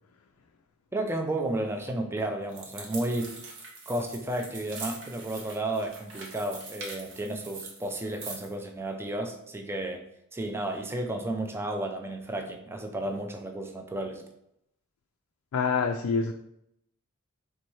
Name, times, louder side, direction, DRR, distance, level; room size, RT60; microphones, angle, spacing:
voice 1, 0.9-3.3 3.9-10.0 10.3-14.2, right 1 dB, 10° right, 4 dB, 0.4 m, -32 dB
sound 1, 2.5-8.5, right 3 dB, 60° right, 1.0 m, -43 dB
voice 2, 15.5-16.3, left 5 dB, 85° left, 4 dB, 0.4 m, -26 dB
4.1 x 3.4 x 3.1 m, 0.78 s
head